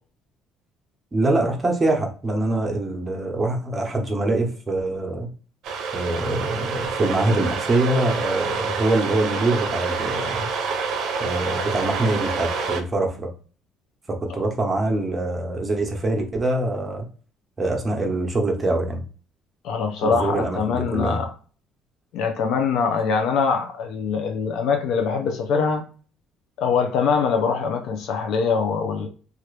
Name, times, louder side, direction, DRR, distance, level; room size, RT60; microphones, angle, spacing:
voice 1, 1.1-5.3 5.9-10.5 11.2-13.3 14.1-17.1 17.6-19.0 20.0-21.2, right 2 dB, 20° right, 0.9 m, -24 dB
sound 1, 5.6-12.8, right 5 dB, 65° right, 0.6 m, -27 dB
voice 2, 19.6-21.3 22.1-25.8 26.6-29.1, left 5 dB, 70° left, 0.4 m, -23 dB
2.9 x 2.4 x 3.2 m
cardioid pair, 105°, 0 cm